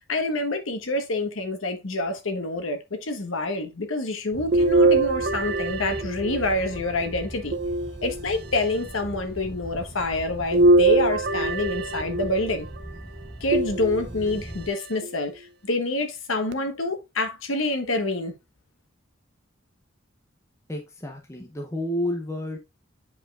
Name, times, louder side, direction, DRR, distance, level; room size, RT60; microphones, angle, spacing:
voice 1, 0.1-7.6 8.0-12.7 13.4-18.3, left 2 dB, 80° left, 1.2 m, -27 dB
sound 1, 4.3-14.7, right 1 dB, 30° left, 2.5 m, -39 dB
sound 2, 4.5-6.8 7.5-8.5 10.5-12.6 13.5-14.4 15.0-15.1 16.5-16.6, right 2 dB, 55° right, 0.5 m, -22 dB
voice 2, 20.7-22.6, left 1 dB, 15° left, 0.8 m, -30 dB
8.6 x 5.0 x 2.4 m
head